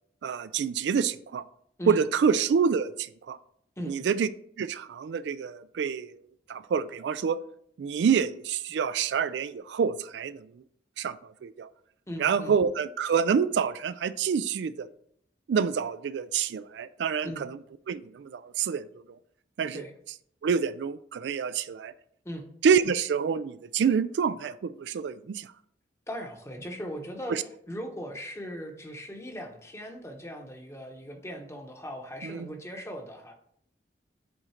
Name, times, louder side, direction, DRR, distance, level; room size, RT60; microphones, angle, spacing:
voice 1, 0.2-1.4 1.9-3.4 3.8-4.3 4.6-6.2 6.5-7.4 7.8-10.4 11.0-11.7 12.2-14.9 15.5-17.6 17.9-18.8 19.6-19.8 20.4-21.9 22.6-25.5 27.3-27.4 32.2-32.5, right 6 dB, 75° right, 15 dB, 0.3 m, -27 dB
voice 2, 12.1-12.6 17.2-17.4 19.7-19.9 22.2-22.5 26.1-27.4 27.7-33.3, equal, 15° left, 3 dB, 0.9 m, -38 dB
8.0 x 3.7 x 4.3 m, 0.67 s
head